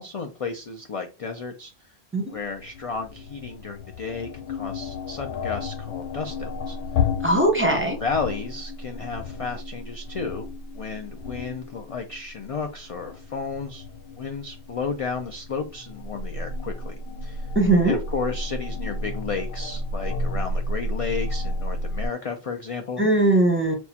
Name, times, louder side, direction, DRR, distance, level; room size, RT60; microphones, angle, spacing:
voice 1, 0.0-1.7 2.3-6.8 7.7-10.5 10.7-13.8 14.1-16.9 17.2-17.5 17.8-23.0 23.7-23.8, left 4 dB, 50° left, 4 dB, 0.4 m, -33 dB
sound 1, 2.3-22.1, left 3 dB, 85° left, 0.9 m, -32 dB
voice 2, 7.2-8.0 17.5-18.0 23.0-23.7, right 2 dB, 10° right, 1 dB, 0.8 m, -20 dB
6.1 x 2.3 x 2.8 m, 0.30 s
omnidirectional pair, 1.1 m